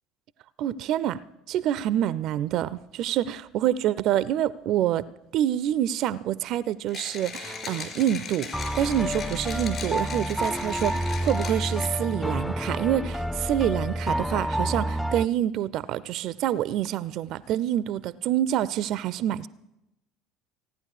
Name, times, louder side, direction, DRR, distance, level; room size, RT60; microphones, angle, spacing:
voice 1, 0.6-1.2 1.5-19.5, right 11 dB, 55° right, 0.4 m, -27 dB
Mechanisms, 6.9-12.1, left 5 dB, 45° left, 4.3 m, -38 dB
sound 1, 7.4-8.0 8.5-15.3, equal, 5° left, 0.5 m, -29 dB
16.5 x 9.5 x 6.6 m
hypercardioid pair, 65°, 0 cm